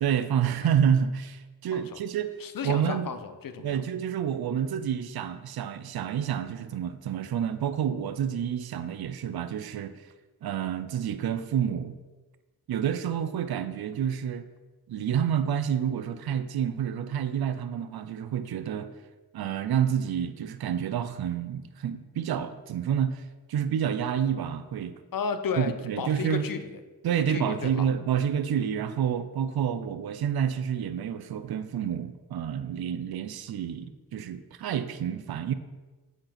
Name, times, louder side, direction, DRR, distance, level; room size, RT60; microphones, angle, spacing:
voice 1, 0.0-2.3 2.6-3.1 3.6-10.1 10.4-12.0 12.7-14.5 14.9-18.9 19.3-25.0 25.6-26.5 27.0-35.5, right 8 dB, 85° right, 11 dB, 0.5 m, -29 dB
voice 2, 2.4-3.8 25.1-26.8 27.1-27.9, left 6 dB, 65° left, 9 dB, 0.7 m, -33 dB
7.9 x 4.4 x 5.8 m, 1.3 s
wide cardioid pair, 80°, 36 cm